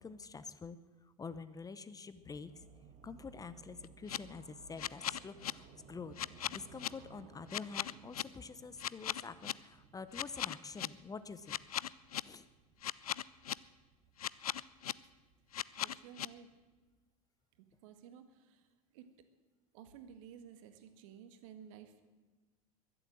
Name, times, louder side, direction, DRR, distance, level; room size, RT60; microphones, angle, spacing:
voice 1, 0.0-2.6 3.0-6.2 6.5-11.6 12.2-12.5, left 5 dB, 20° left, 13 dB, 0.8 m, -47 dB
sound 1, 2.1-17.0, right 6 dB, 40° right, 1.9 m, -61 dB
sound 2, 3.8-4.2 4.8-5.5 6.2-6.9 7.5-8.2 8.8-9.5 10.1-10.9 11.5-12.2 12.8-13.5 14.2-14.9 15.5-16.3, left 11 dB, 80° left, 0.4 m, -37 dB
voice 2, 15.8-16.5 17.8-18.6 18.9-19.1 19.7-22.0, right 8 dB, 60° right, 9 dB, 1.7 m, -54 dB
22.5 x 7.9 x 7.5 m, 1.3 s
figure-of-eight pair, 75°, 19 cm